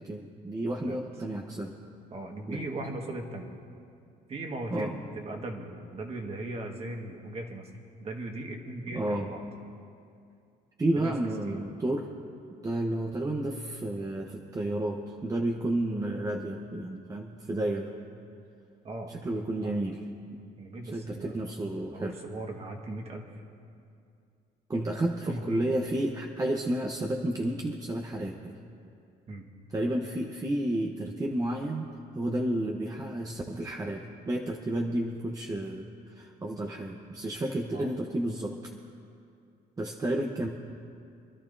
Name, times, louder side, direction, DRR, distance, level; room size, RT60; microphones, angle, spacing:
voice 1, 0.0-1.8 2.5-2.7 4.7-5.0 8.9-9.4 10.8-12.1 12.6-17.9 19.1-20.1 20.9-22.2 24.7-28.6 29.7-38.6 39.8-40.5, right 1 dB, 20° right, 1 dB, 0.9 m, -31 dB
voice 2, 2.1-3.5 4.3-7.7 8.0-9.4 10.9-11.1 11.5-11.6 18.8-19.1 19.6-19.7 20.6-21.5 21.9-23.3 25.3-25.6 29.3-29.4 37.7-37.9, right 2 dB, 35° right, 2 dB, 1.6 m, -38 dB
27.0 x 11.5 x 2.7 m, 2.4 s
cardioid pair, 110°, 17 cm